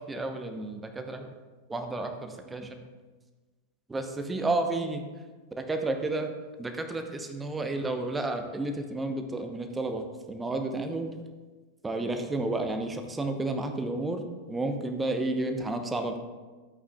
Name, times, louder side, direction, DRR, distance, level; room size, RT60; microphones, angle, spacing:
voice 1, 0.1-1.3 1.7-2.7 3.9-5.0 5.7-6.3 6.6-11.1 11.8-16.2, right 2 dB, 10° right, 5 dB, 0.8 m, -31 dB
12.5 x 8.3 x 2.4 m, 1.3 s
figure-of-eight pair, 90°, 0 cm